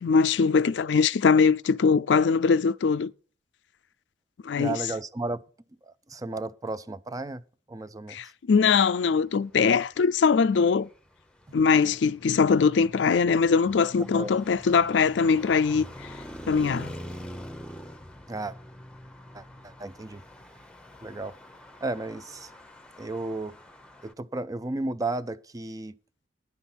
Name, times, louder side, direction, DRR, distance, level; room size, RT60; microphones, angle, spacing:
voice 1, 0.0-3.1 4.4-4.8 8.1-10.9 11.5-15.9 16.5-16.9, left 5 dB, 70° left, 0.4 m, -22 dB
voice 2, 4.6-5.4 5.8-7.4 7.7-8.2 14.1-14.3 18.3-18.5 19.3-20.2 21.0-21.3 21.8-22.5 23.0-23.5 24.0-25.9, right 2 dB, 20° right, 0.5 m, -33 dB
Traffic noise roadway noise, 10.4-24.1, equal, 5° left, 0.9 m, -45 dB
10.5 x 7.1 x 5.9 m
head